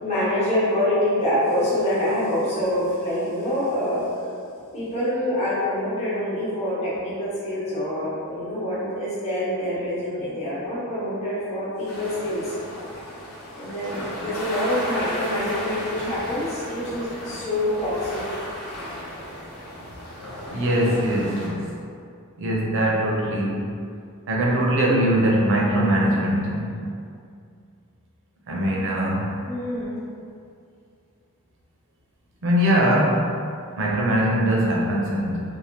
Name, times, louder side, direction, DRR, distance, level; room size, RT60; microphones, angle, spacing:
voice 1, 0.0-4.2 4.7-12.6 13.5-18.2 29.4-30.0, left 1 dB, 30° left, -10 dB, 1.0 m, -26 dB
sound 1, 11.9-21.5, equal, 90° left, 0.8 m, -34 dB
voice 2, 20.5-21.6 22.4-23.7 24.3-26.8 28.5-29.4 32.4-33.3 33.8-35.4, right 1 dB, 60° right, -3 dB, 0.5 m, -21 dB
3.2 x 2.1 x 2.8 m, 2.4 s
head